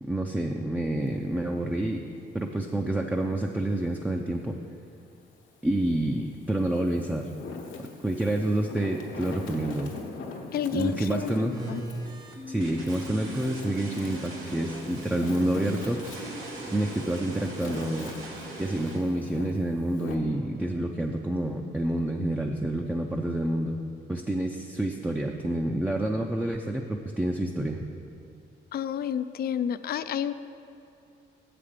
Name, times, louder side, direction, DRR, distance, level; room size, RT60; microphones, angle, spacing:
voice 1, 0.0-2.0 2.3-4.6 5.6-7.3 8.0-9.9 10.7-11.5 12.5-16.1 16.7-18.1 18.6-23.8 24.1-27.9, right 1 dB, 5° right, 1 dB, 0.4 m, -28 dB
Wind, 0.9-3.8 4.3-5.6 6.2-20.1, left 4 dB, 85° left, 1.1 m, -43 dB
voice 2, 10.5-11.8 28.7-30.3, left 9 dB, 50° left, 13 dB, 0.4 m, -30 dB
sound 1, 11.5-19.0, right 2 dB, 90° right, 1.3 m, -40 dB
Bass guitar, 12.4-18.6, equal, 30° right, 0.8 m, -43 dB
7.4 x 5.1 x 7.2 m, 2.6 s
cardioid pair, 90°, 20 cm